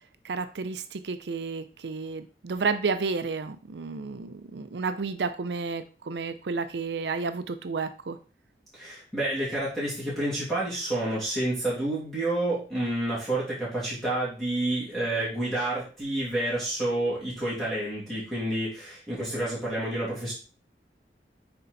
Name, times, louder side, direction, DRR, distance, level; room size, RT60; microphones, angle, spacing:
voice 1, 0.2-8.2, right 4 dB, 80° right, 10 dB, 0.5 m, -31 dB
voice 2, 8.7-20.3, right 1 dB, ahead, -9 dB, 2.7 m, -29 dB
6.8 x 4.5 x 3.9 m, 0.36 s
head